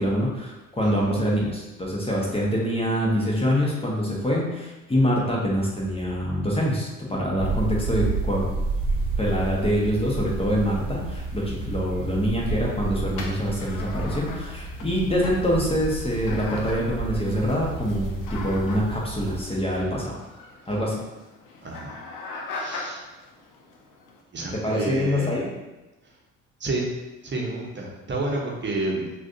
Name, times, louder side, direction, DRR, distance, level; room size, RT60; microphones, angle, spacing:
voice 1, 0.0-8.5 9.2-20.2 20.7-21.0 24.5-25.5, equal, 15° left, -3 dB, 1.3 m, -25 dB
voice 2, 0.8-1.1 21.6-22.0 22.5-23.0 24.3-25.3 26.0-26.2 26.6-26.9 27.2-29.1, right 2 dB, 30° right, -1 dB, 1.2 m, -30 dB
sound 1, 7.4-19.4, right 3 dB, 75° right, 1.0 m, -31 dB
sound 2, 13.2-24.2, left 3 dB, 55° left, 0.8 m, -40 dB
6.0 x 2.8 x 2.7 m, 1.0 s
figure-of-eight pair, 50°, 38 cm